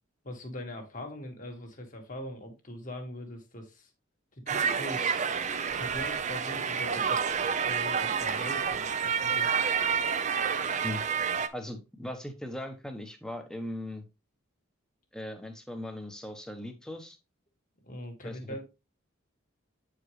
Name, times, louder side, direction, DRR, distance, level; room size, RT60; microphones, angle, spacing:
voice 1, 0.2-3.9 4.3-5.3 5.7-9.5 17.8-18.6, left 1 dB, 40° left, 1.8 m, -41 dB
sound 1, 4.5-11.5, right 6 dB, 35° right, 0.6 m, -29 dB
voice 2, 10.6-11.0 11.5-14.1 15.1-17.2 18.2-18.6, left 1 dB, 5° left, 1.0 m, -39 dB
8.6 x 4.9 x 3.2 m
head